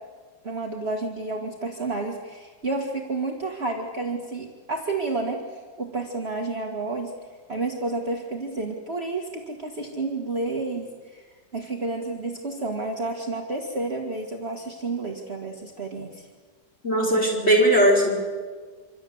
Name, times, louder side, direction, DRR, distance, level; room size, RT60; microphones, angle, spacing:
voice 1, 0.4-7.1 7.5-16.3, right 3 dB, 35° right, 0 dB, 2.3 m, -30 dB
voice 2, 16.8-18.1, right 1 dB, 35° left, -1 dB, 5.4 m, -19 dB
26.5 x 26.5 x 8.0 m, 1.5 s
omnidirectional pair, 1.9 m